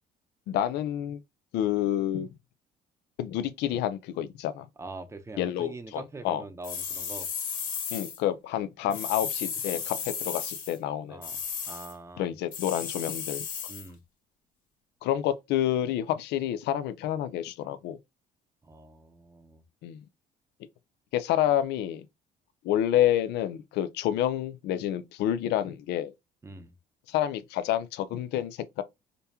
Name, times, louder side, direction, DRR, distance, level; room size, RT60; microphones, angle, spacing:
voice 1, 0.5-1.2 1.5-2.3 3.2-4.7 5.4-6.4 7.9-11.2 12.2-13.4 15.0-18.0 19.8-20.0 21.1-22.1 22.6-26.1 27.1-28.8, left 11 dB, 80° left, 0.6 m, -28 dB
voice 2, 4.8-7.3 11.1-11.4 11.7-12.3 13.7-14.0 18.6-19.6 26.4-26.7, right 2 dB, 15° right, 0.7 m, -43 dB
sound 1, 6.6-8.2 8.9-10.8 11.2-11.9 12.5-13.9, left 7 dB, 50° left, 1.5 m, -34 dB
5.2 x 2.3 x 2.8 m
cardioid pair, 110°, 17 cm